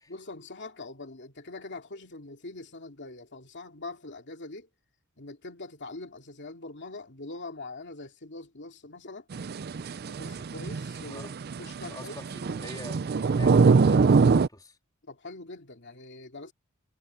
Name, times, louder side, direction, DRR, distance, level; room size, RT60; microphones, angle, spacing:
voice 1, 0.1-4.7 5.2-9.3 10.1-11.3 11.6-12.2 15.0-16.5, left 2 dB, 55° left, 2.7 m, -43 dB
sound 1, 9.3-14.5, right 4 dB, 45° right, 0.5 m, -23 dB
voice 2, 11.8-14.8, left 2 dB, 20° left, 3.6 m, -45 dB
head